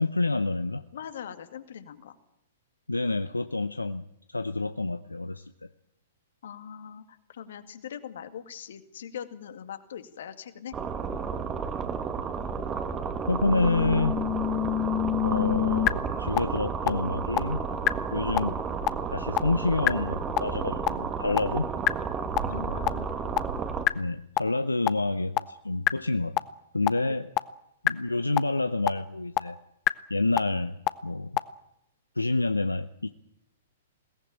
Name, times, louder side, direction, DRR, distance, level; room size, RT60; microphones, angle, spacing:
voice 1, 0.0-0.8 2.9-5.7 13.3-14.2 15.2-17.6 18.1-18.6 19.1-21.7 23.9-26.4 26.7-27.3 27.8-29.6 30.1-30.8 31.0-31.4 32.2-33.1, left 2 dB, 85° left, 11 dB, 0.7 m, -28 dB
voice 2, 0.9-2.1 6.4-10.7 22.5-23.1 27.1-27.2, left 8 dB, 60° left, 9 dB, 2.1 m, -41 dB
sound 1, 10.7-23.9, right 6 dB, 20° right, 1.7 m, -32 dB
sound 2, 13.4-15.9 16.4-16.5 16.9-17.0 17.4-17.5 17.9-18.0 18.4-18.5 18.9-19.0 19.4-19.5 19.9-20.0 20.4-20.5 20.9-21.0 21.4-21.5 21.9-22.0 22.4-22.5 22.9-23.0 23.4-23.5 23.9-24.0 24.4-24.5 24.9-25.0 25.4-25.5 25.9-26.0 26.4-26.5 26.9-27.0 27.4-27.5 27.9-28.0 28.4-28.5 28.9-29.0 29.4-29.5 29.9-30.0 30.4-30.5 30.9-31.0 31.4-31.5, left 14 dB, 25° left, 0.8 m, -24 dB
21.5 x 17.5 x 8.9 m, 0.82 s
figure-of-eight pair, 115°, 0 cm